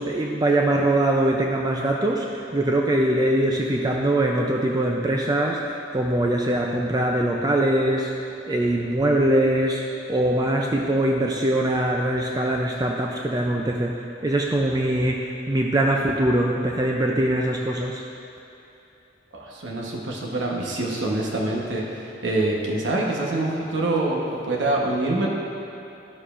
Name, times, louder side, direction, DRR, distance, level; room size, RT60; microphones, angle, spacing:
voice 1, 0.0-18.0, right 1 dB, 20° right, 0 dB, 0.4 m, -22 dB
voice 2, 19.3-25.3, right 2 dB, 80° right, -2 dB, 1.0 m, -25 dB
12.0 x 6.8 x 2.5 m, 2.9 s
head